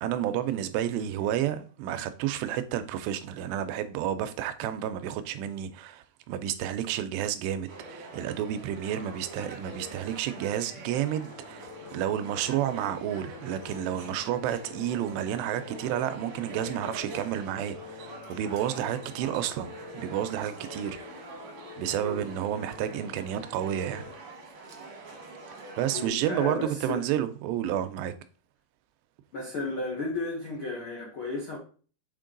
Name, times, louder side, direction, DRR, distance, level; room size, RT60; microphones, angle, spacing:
voice 1, 0.0-21.1 21.8-24.1 25.8-28.1, right 10 dB, 90° right, 2.8 m, -31 dB
sound 1, 7.7-26.1, right 2 dB, 55° right, 1.6 m, -45 dB
sound 2, 11.2-24.2, left 9 dB, 90° left, 3.0 m, -48 dB
voice 2, 25.9-27.0 29.3-31.6, left 2 dB, 75° left, 1.2 m, -33 dB
6.5 x 4.5 x 3.8 m
omnidirectional pair, 4.8 m